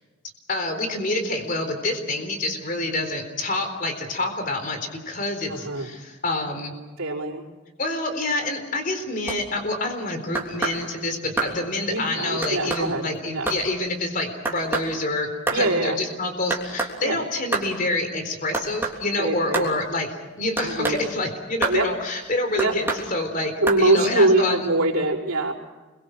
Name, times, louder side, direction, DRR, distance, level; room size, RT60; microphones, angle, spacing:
voice 1, 0.5-6.7 7.8-20.1 20.4-23.5 23.8-24.7, left 2 dB, 40° left, 6 dB, 4.0 m, -27 dB
voice 2, 5.5-5.9 7.0-7.4 11.9-13.1 13.3-13.5 15.5-16.0 17.0-17.1 19.2-19.6 20.6-21.0 21.7-21.9 22.6-22.7 23.6-25.5, right 2 dB, 80° right, -4 dB, 5.0 m, -23 dB
sound 1, 9.3-9.4 10.3-10.8 11.4-11.6 12.4-12.9 13.5-13.6 14.5-14.9 15.5-15.6 16.5-16.9 17.5-17.7 18.5-19.0 19.5-19.7 20.6-21.0 21.6-21.8 22.6-23.1 23.7-23.8, right 3 dB, 10° right, 3.3 m, -26 dB
29.5 x 23.0 x 6.4 m, 1.3 s
head